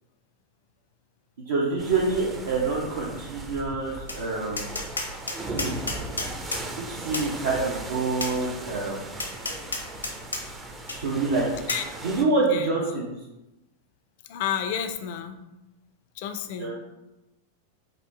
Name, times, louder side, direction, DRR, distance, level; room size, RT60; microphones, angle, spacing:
voice 1, 1.5-4.8 5.4-5.8 6.8-9.0 11.0-11.5 12.0-13.1 16.6-16.7, right 3 dB, 65° right, -5 dB, 0.7 m, -26 dB
sound 1, 1.8-12.2, right 2 dB, 15° right, 0.5 m, -38 dB
Tap, 4.1-4.2 4.6-6.6 7.1-7.3 8.2-8.3 9.2-10.4 10.9-11.0 11.7-11.8, left 2 dB, 80° left, 0.7 m, -31 dB
voice 2, 14.3-15.4 16.2-16.7, left 9 dB, 50° left, 8 dB, 0.4 m, -30 dB
5.2 x 2.7 x 3.2 m, 0.97 s
figure-of-eight pair, 90°, 0 cm